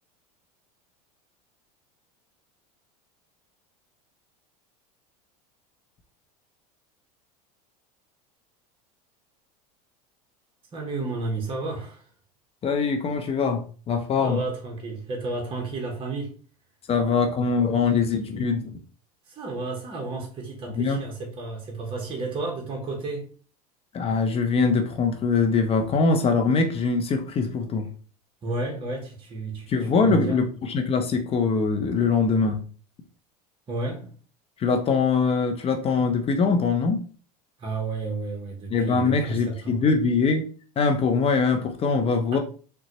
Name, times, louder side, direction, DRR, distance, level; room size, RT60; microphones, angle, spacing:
voice 1, 10.7-12.1 14.2-16.4 19.3-23.3 28.4-30.5 33.7-34.1 37.6-39.8 42.3-42.4, right 3 dB, 25° right, 1.0 m, -32 dB
voice 2, 12.6-14.4 16.9-18.8 20.7-21.0 23.9-27.9 29.7-32.6 34.6-37.0 38.7-40.4 40.8-42.4, left 4 dB, 30° left, 0.6 m, -23 dB
3.8 x 2.2 x 2.9 m
hypercardioid pair, 95°, 20 cm